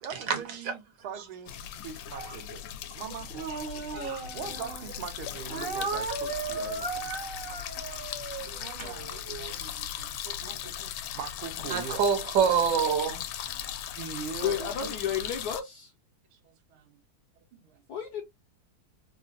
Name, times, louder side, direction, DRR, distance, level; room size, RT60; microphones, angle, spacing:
voice 1, 0.0-2.6 2.9-3.3 4.3-7.0 8.4-12.1 13.9-14.9 16.3-17.0 17.5-17.8, right 7 dB, 85° right, 1.6 m, -42 dB
sound 1, 1.5-15.6, left 10 dB, 90° left, 1.4 m, -38 dB
Speech, 3.3-4.9 5.5-9.5, right 4 dB, 50° right, 0.7 m, -36 dB
voice 2, 3.9-4.3 11.7-13.2, right 7 dB, 65° right, 1.3 m, -26 dB
voice 3, 14.4-15.9 17.9-18.2, left 8 dB, 65° left, 1.0 m, -32 dB
3.8 x 2.2 x 2.4 m
omnidirectional pair, 2.3 m